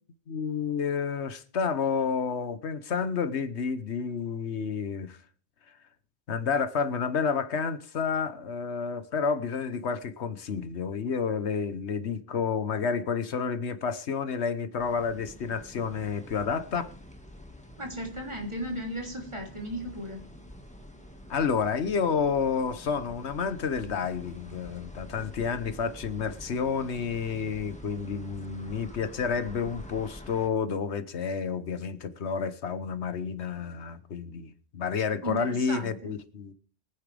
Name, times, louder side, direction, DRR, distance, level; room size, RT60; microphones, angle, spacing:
voice 1, 0.3-5.2 6.3-16.9 21.3-36.5, left 6 dB, 85° left, 1.3 m, -30 dB
sound 1, 14.8-30.5, equal, 5° left, 1.7 m, -47 dB
voice 2, 17.8-20.2 35.2-36.1, equal, 25° right, 3.2 m, -35 dB
22.5 x 9.9 x 3.4 m
omnidirectional pair, 1.1 m